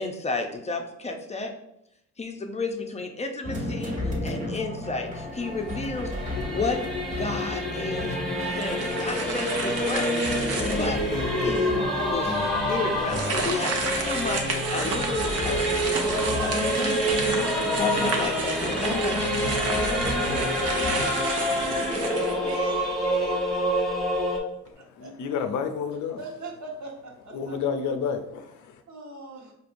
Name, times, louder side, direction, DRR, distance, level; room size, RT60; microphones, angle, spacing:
voice 1, 0.0-1.5 2.2-6.1 6.4-6.8 7.1-8.1 8.4-11.0 11.4-19.4, left 3 dB, 20° left, 0.5 m, -32 dB
sound 1, 3.4-21.0, left 1 dB, 25° right, 1.2 m, -34 dB
Singing / Musical instrument, 5.0-24.4, equal, ahead, 1.0 m, -27 dB
sound 2, 8.6-11.1 11.7-11.8 13.0-22.8, right 4 dB, 55° right, 0.7 m, -32 dB
voice 2, 20.6-23.6 25.0-25.1 26.2-27.6 28.9-29.5, right 2 dB, 70° right, 1.1 m, -40 dB
voice 3, 24.9-26.2 27.3-28.8, left 6 dB, 75° left, 0.6 m, -30 dB
4.5 x 2.7 x 2.5 m
cardioid pair, 90°, 30 cm